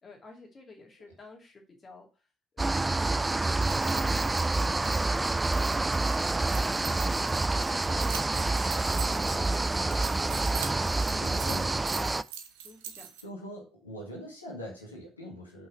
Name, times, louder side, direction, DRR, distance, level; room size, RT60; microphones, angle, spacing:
voice 1, 0.0-2.3 9.1-9.6 10.4-12.1 12.6-13.1, left 3 dB, 35° left, 2 dB, 2.7 m, -52 dB
sound 1, 2.6-12.2, right 2 dB, 15° right, 0.4 m, -27 dB
sound 2, 3.5-13.2, right 8 dB, 70° right, 0.9 m, -43 dB
voice 2, 9.1-9.7 11.2-11.7 13.2-15.7, equal, 85° left, -2 dB, 2.0 m, -43 dB
5.6 x 5.4 x 6.2 m, 0.32 s
figure-of-eight pair, 50°, 0 cm